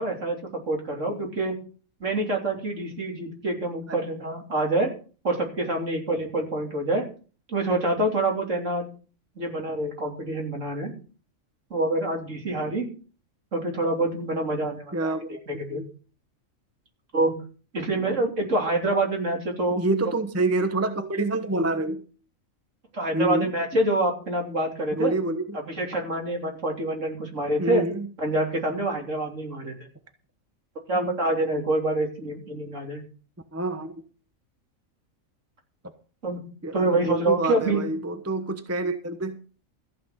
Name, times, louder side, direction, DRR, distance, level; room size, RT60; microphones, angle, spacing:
voice 1, 0.0-1.5 2.0-4.9 5.2-7.1 7.5-8.8 9.4-10.9 11.7-12.9 13.5-15.1 15.5-15.8 17.1-17.4 17.7-19.8 22.9-25.1 25.7-27.8 28.2-29.8 30.9-33.0 36.2-36.4 36.7-37.8, right 2 dB, 60° right, 1 dB, 3.7 m, -26 dB
voice 2, 14.9-15.4 15.7-15.9 19.7-22.0 23.1-23.5 24.9-25.6 27.6-28.1 30.9-31.2 33.5-33.9 36.6-39.4, right 2 dB, 10° right, 8 dB, 1.0 m, -27 dB
14.5 x 6.2 x 7.7 m, 0.38 s
omnidirectional pair, 1.4 m